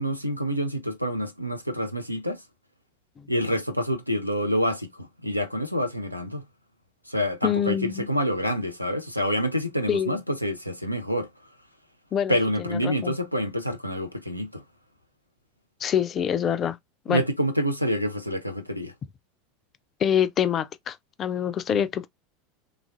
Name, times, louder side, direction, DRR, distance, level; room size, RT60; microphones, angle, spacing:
voice 1, 0.0-2.4 3.3-6.4 7.1-11.3 12.3-14.6 17.1-18.9, equal, 90° right, 0.5 m, -27 dB
voice 2, 7.4-8.1 9.9-10.2 12.1-13.1 15.8-16.8 17.1-17.2 20.0-22.1, left 9 dB, 30° left, 0.3 m, -25 dB
3.2 x 2.4 x 2.4 m
figure-of-eight pair, 80°, 0 cm